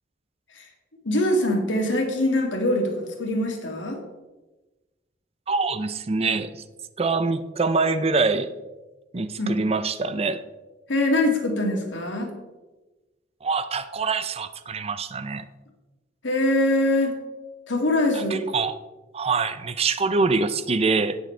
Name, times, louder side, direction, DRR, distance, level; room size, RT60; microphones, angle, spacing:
voice 1, 1.1-4.0 9.4-9.6 10.9-12.3 16.2-17.2 17.7-18.4, left 1 dB, 85° left, 2 dB, 2.1 m, -23 dB
voice 2, 5.5-6.6 7.0-8.5 9.1-10.4 13.4-15.4 18.3-18.7 19.1-21.2, right 4 dB, 35° right, 12 dB, 0.5 m, -24 dB
17.5 x 6.4 x 3.3 m, 1.1 s
head